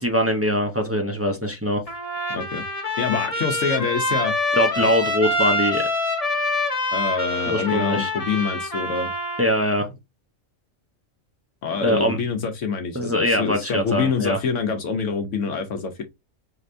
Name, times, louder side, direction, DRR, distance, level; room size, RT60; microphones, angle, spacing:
voice 1, 0.0-1.8 4.5-5.9 7.5-8.1 9.4-9.9 11.8-12.2 12.9-14.4, equal, 15° right, 0.5 m, -22 dB
Trumpet, 1.9-9.5, left 1 dB, 30° left, 0.9 m, -25 dB
voice 2, 2.3-4.3 4.8-4.9 6.9-9.1 11.6-16.0, left 5 dB, 70° left, 1.0 m, -26 dB
5.0 x 3.2 x 2.5 m
omnidirectional pair, 1.4 m